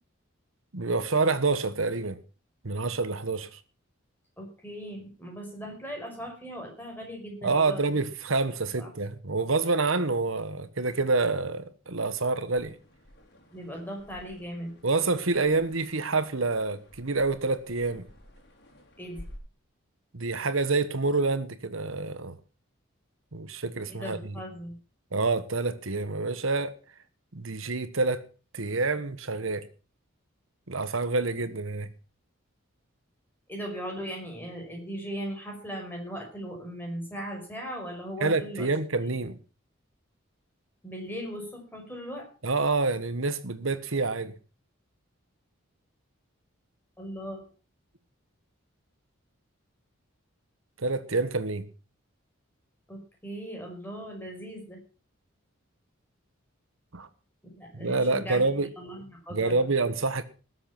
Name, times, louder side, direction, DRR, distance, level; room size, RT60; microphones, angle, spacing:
voice 1, 0.7-2.2 2.6-3.6 7.4-12.7 14.8-18.0 20.1-22.4 23.3-24.4 25.1-26.7 27.3-28.2 28.5-29.7 30.7-31.9 38.2-39.4 42.4-44.3 50.8-51.7 56.9-57.1 57.7-58.7 59.3-60.2, right 3 dB, 75° right, 1.4 m, -27 dB
voice 2, 4.4-7.8 8.8-8.9 13.5-14.7 19.0-19.2 23.8-24.7 33.5-38.7 40.8-42.3 47.0-47.5 52.9-54.8 57.4-58.4 58.8-59.7, equal, 10° left, 5.7 m, -38 dB
sound 1, 12.5-19.4, left 1 dB, 50° left, 4.6 m, -52 dB
19.0 x 7.9 x 5.9 m
head